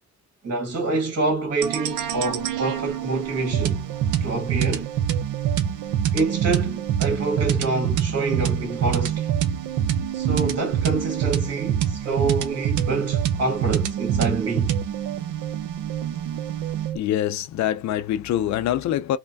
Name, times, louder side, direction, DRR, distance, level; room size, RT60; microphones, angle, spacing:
voice 1, 0.4-3.8 4.2-4.9 6.1-9.3 10.1-14.8, right 3 dB, 55° right, 1.6 m, -26 dB
sound 1, 1.6-17.0, right 9 dB, 80° right, 0.6 m, -25 dB
voice 2, 16.9-19.2, left 11 dB, 65° left, 0.4 m, -24 dB
3.2 x 2.1 x 2.5 m
cardioid pair, 90°, 30 cm